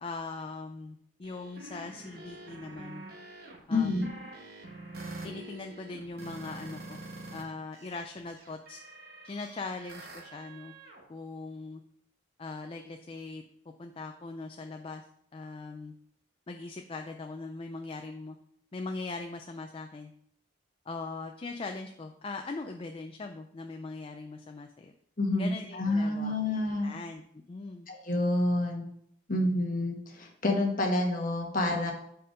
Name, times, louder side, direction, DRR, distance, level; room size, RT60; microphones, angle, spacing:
voice 1, 0.0-3.0 3.7-4.1 5.2-7.0 7.3-8.8 9.2-10.7 11.1-11.8 12.4-13.4 13.8-15.0 15.3-15.9 16.5-18.4 18.7-20.1 20.9-24.9 25.4-27.2 27.5-27.9, left 3 dB, 30° left, 5 dB, 0.3 m, -40 dB
sound 1, 1.2-7.4 7.7-11.0, right 2 dB, 50° right, 1.1 m, -46 dB
voice 2, 3.7-4.1 25.2-26.9 27.9-28.8 29.3-31.9, left 2 dB, 45° left, 1 dB, 1.2 m, -28 dB
5.2 x 4.6 x 4.9 m, 0.69 s
head